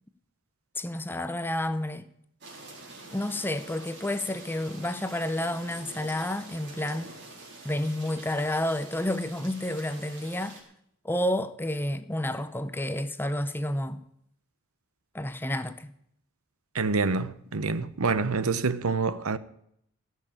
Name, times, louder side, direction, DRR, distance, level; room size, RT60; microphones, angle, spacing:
voice 1, 0.8-2.1 3.1-7.1 7.6-10.6 11.0-14.0 15.1-15.9, left 1 dB, 10° left, 0.6 m, -30 dB
sound 1, 2.4-10.6, right 2 dB, 55° right, 4.0 m, -46 dB
voice 2, 16.7-19.4, right 4 dB, 80° right, 0.9 m, -27 dB
17.0 x 6.5 x 9.0 m
head